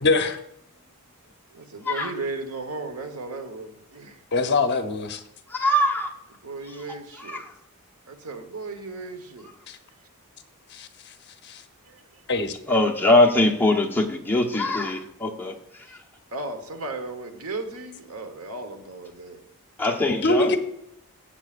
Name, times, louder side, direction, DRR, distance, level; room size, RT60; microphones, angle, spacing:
voice 1, 0.0-0.4 4.3-5.2 9.7-9.8 10.7-10.9 11.4-11.6 12.3-12.5 20.2-20.6, left 3 dB, 50° left, 6 dB, 0.9 m, -23 dB
voice 2, 1.5-4.2 6.4-7.4 8.1-9.5 11.8-12.2 16.3-19.4, right 3 dB, 75° right, 6 dB, 1.3 m, -35 dB
voice 3, 5.5-6.1 6.7-6.8 7.2-7.5 12.7-16.0 19.8-20.6, left 1 dB, 10° left, -1 dB, 1.1 m, -22 dB
14.5 x 8.0 x 2.5 m, 0.76 s
head